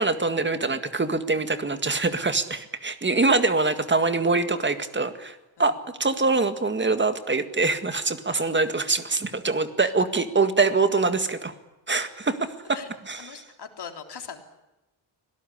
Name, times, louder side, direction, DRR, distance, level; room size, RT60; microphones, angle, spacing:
voice 1, 0.0-11.5 11.9-12.5 13.1-13.2, right 3 dB, 25° right, 9 dB, 1.9 m, -24 dB
voice 2, 13.2-14.4, left 7 dB, 55° left, 4 dB, 3.6 m, -41 dB
25.0 x 18.0 x 9.9 m, 1.0 s
wide cardioid pair, 140°, 46 cm